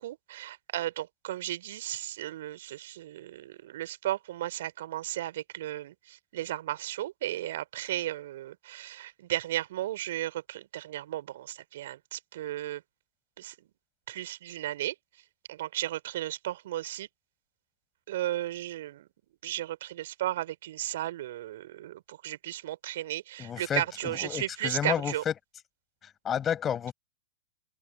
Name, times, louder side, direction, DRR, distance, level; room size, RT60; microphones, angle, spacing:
voice 1, 0.0-12.8 13.4-13.5 14.1-14.9 15.5-17.1 18.1-19.1 19.4-25.2, right 14 dB, 60° right, 3.6 m, -35 dB
voice 2, 23.4-25.3 26.0-26.9, left 9 dB, 25° left, 6.5 m, -31 dB
open air
hypercardioid pair, 105°, 0 cm